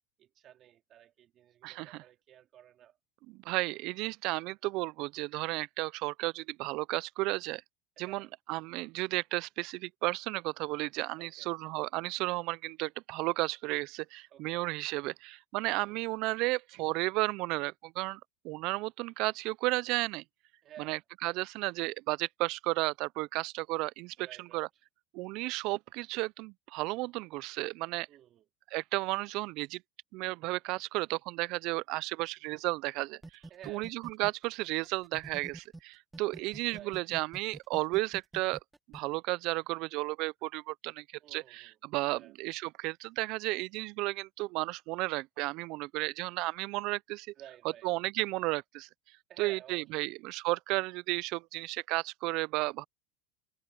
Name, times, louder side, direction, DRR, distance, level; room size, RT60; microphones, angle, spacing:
voice 1, 0.2-3.0 8.0-8.3 11.2-11.5 14.3-14.7 15.8-16.0 20.6-21.0 24.2-24.7 28.1-28.5 33.5-33.9 36.7-37.0 41.2-41.8 42.1-42.3 47.4-47.9 49.3-50.1, right 11 dB, 35° right, 3.4 m, -53 dB
voice 2, 1.6-2.0 3.3-7.6 8.0-20.2 20.8-24.7 25.1-28.1 28.7-29.8 30.1-33.2 33.7-38.6 38.9-41.0 41.3-47.3 47.8-48.9 49.4-52.8, right 22 dB, 55° right, 0.3 m, -33 dB
sound 1, 33.2-35.8 36.1-39.0, right 2 dB, 10° right, 1.0 m, -47 dB
supercardioid pair, 145°, 0 cm